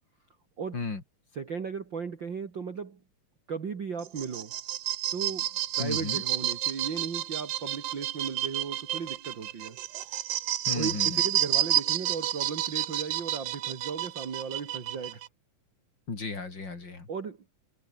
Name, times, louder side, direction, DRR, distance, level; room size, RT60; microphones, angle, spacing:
voice 1, 1.3-3.0 3.5-4.6 5.1-5.5 5.8-9.8 10.7-15.2 17.1-17.4, right 6 dB, 35° right, 2.4 m, -36 dB
sound 1, 4.0-15.3, right 13 dB, 75° right, 1.4 m, -30 dB
voice 2, 5.8-6.2 10.7-11.2 16.1-17.1, left 4 dB, 30° left, 3.8 m, -34 dB
omnidirectional pair, 4.1 m